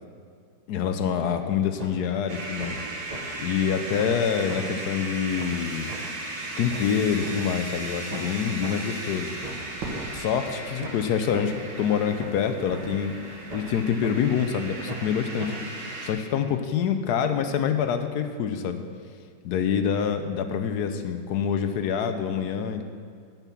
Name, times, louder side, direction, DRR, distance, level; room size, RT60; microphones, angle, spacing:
voice 1, 0.7-5.9 6.6-9.3 10.1-13.1 13.5-15.5 16.0-18.8 19.4-22.8, left 7 dB, 70° left, 8 dB, 1.0 m, -26 dB
sound 1, 1.8-1.9 2.3-2.7 3.1-3.2 3.6-3.7 4.0-4.2 4.5-4.6 5.0-5.1 5.4-5.5 5.9-6.0 6.4-7.3 7.7-7.8 8.1-8.3 8.6-8.7 9.1-10.1 10.4-10.5 10.8-11.0 11.3-11.4 11.8-11.9 12.2-12.4 12.7-12.8 13.2-13.8 14.0-14.1 14.5-14.6 14.9-15.1 15.4-15.5 15.9-16.0, right 3 dB, 30° right, 0.7 m, -38 dB
sound 2, 2.3-16.1, right 2 dB, 70° right, 2.2 m, -36 dB
Fireworks, 9.8-12.0, right 3 dB, 85° right, 2.1 m, -40 dB
9.1 x 5.9 x 7.0 m, 2.2 s
omnidirectional pair, 2.0 m